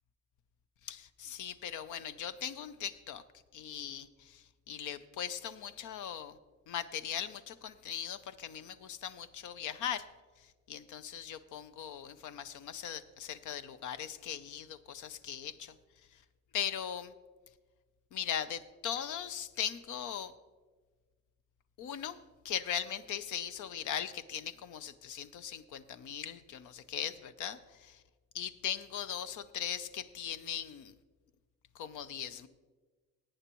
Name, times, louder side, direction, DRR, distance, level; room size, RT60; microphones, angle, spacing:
voice 1, 0.8-3.2 3.5-6.4 6.7-10.1 10.7-15.7 16.5-17.1 18.1-20.3 21.8-28.0 28.3-30.9 31.7-32.5, left 9 dB, 75° left, 13 dB, 0.7 m, -39 dB
18.0 x 8.8 x 3.0 m, 1.4 s
cardioid pair, 90°, 30 cm